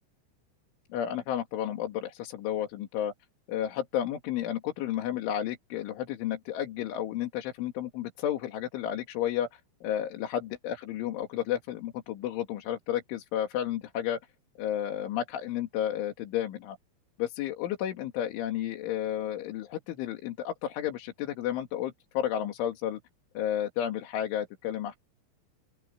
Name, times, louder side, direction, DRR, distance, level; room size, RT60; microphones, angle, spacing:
voice 1, 0.9-3.1 3.5-14.2 14.6-16.8 17.2-23.0 23.4-25.0, left 11 dB, 75° left, 4.6 m, -32 dB
open air
omnidirectional pair, 5.8 m